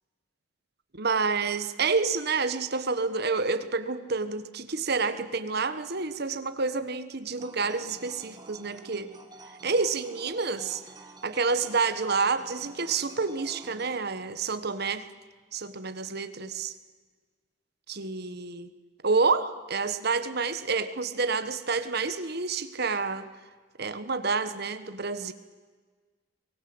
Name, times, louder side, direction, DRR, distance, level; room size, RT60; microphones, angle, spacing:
voice 1, 1.0-9.1 9.6-10.8 11.2-15.0 15.5-16.7 17.9-18.7 19.0-23.3 23.8-25.3, right 4 dB, 55° right, 11 dB, 1.5 m, -28 dB
sound 1, 7.4-14.0, right 2 dB, 20° right, 1.9 m, -49 dB
23.5 x 19.5 x 8.0 m, 1.4 s
head